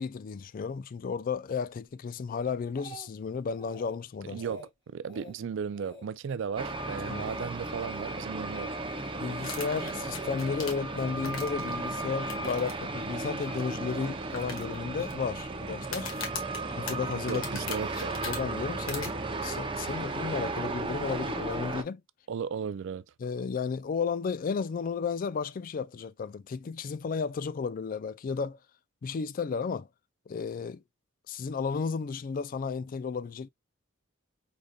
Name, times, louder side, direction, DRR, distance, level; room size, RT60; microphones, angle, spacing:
voice 1, 0.0-4.4 7.0-7.2 9.2-16.1 16.8-17.8 18.2-19.2 19.4-22.0 23.2-28.6 29.0-29.9 30.3-30.8 31.3-33.5, left 5 dB, 40° left, 0.3 m, -33 dB
Speech, 2.3-3.3 3.6-4.0 4.3-4.7 5.1-5.4 5.7-6.1 6.4-6.7 7.2-7.5 7.9-8.7 9.5-9.7, right 2 dB, 25° left, 2.7 m, -48 dB
voice 2, 4.3-8.9 17.2-18.2 22.3-23.0, right 6 dB, 60° right, 0.3 m, -36 dB
sound 1, 6.6-21.8, right 2 dB, 25° right, 0.6 m, -35 dB
sound 2, 9.4-11.7 12.3-12.7 13.0-13.1 13.6-13.7 14.3-15.1 15.8-18.4 18.9-19.1, left 5 dB, 75° left, 1.5 m, -39 dB
5.0 x 4.0 x 2.3 m
head